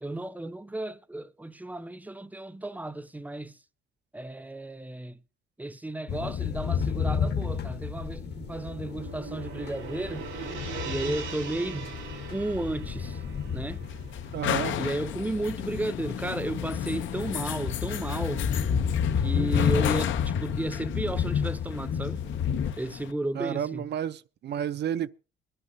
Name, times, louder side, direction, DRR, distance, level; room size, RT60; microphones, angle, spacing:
voice 1, 0.0-3.6 4.1-5.2 5.6-10.3 10.8-12.0 12.3-13.2 13.5-13.8 14.7-18.5 19.2-22.2 22.8-23.9, right 2 dB, 10° right, 0.6 m, -33 dB
sound 1, 6.1-22.7, left 7 dB, 60° left, 1.2 m, -31 dB
Gong, 8.2-16.5, right 5 dB, 90° right, 2.9 m, -42 dB
sound 2, 12.5-23.1, left 11 dB, 75° left, 0.7 m, -35 dB
voice 2, 14.3-14.8 23.3-25.1, right 9 dB, 60° right, 0.5 m, -31 dB
22.5 x 11.0 x 2.7 m
cardioid pair, 90°, 20 cm